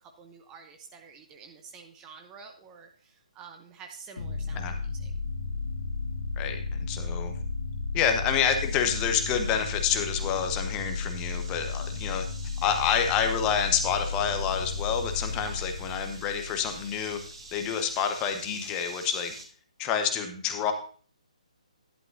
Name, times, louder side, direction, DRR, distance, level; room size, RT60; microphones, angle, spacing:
voice 1, 0.0-5.1 15.4-15.7, right 5 dB, 15° right, 5 dB, 0.8 m, -49 dB
sound 1, 4.2-17.6, left 4 dB, 55° left, 1.8 m, -34 dB
voice 2, 6.4-7.3 7.9-12.2 12.6-17.2 17.5-19.3 19.8-20.7, left 7 dB, 20° left, 6 dB, 1.0 m, -28 dB
sound 2, 8.6-19.4, right 3 dB, 50° right, 2.6 m, -48 dB
11.0 x 11.0 x 2.6 m, 0.43 s
figure-of-eight pair, 135°, 4 cm